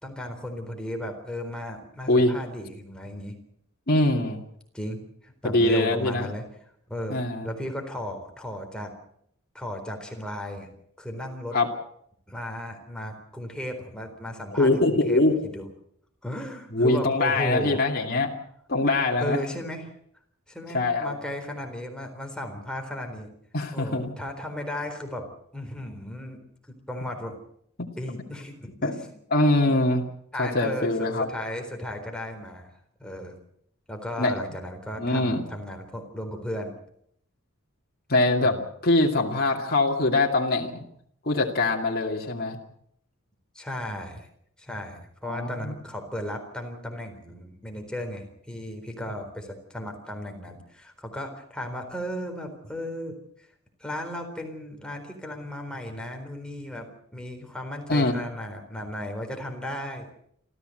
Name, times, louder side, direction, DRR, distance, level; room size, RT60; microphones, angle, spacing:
voice 1, 0.0-3.3 4.7-6.4 6.9-8.9 9.5-10.7 11.0-11.6 12.3-15.2 15.5-15.7 16.2-17.8 19.2-19.9 20.5-23.3 23.7-25.3 25.5-26.4 26.7-27.4 28.0-29.0 30.3-32.7 33.0-33.4 33.9-36.8 38.4-38.6 43.5-44.3 44.6-53.5 53.8-60.1, left 1 dB, 5° left, 3 dB, 4.1 m, -35 dB
voice 2, 3.9-4.4 5.4-6.3 7.1-7.5 11.5-11.7 14.6-15.3 16.7-18.3 18.7-19.4 20.7-21.1 23.5-24.1 27.8-27.9 28.8-28.9 29.3-30.0 30.4-31.3 34.2-34.3 35.0-35.4 38.1-40.8 41.2-42.6 45.2-45.7 57.9-58.2, left 2 dB, 45° left, -1 dB, 2.5 m, -23 dB
27.5 x 14.5 x 7.9 m, 0.70 s
head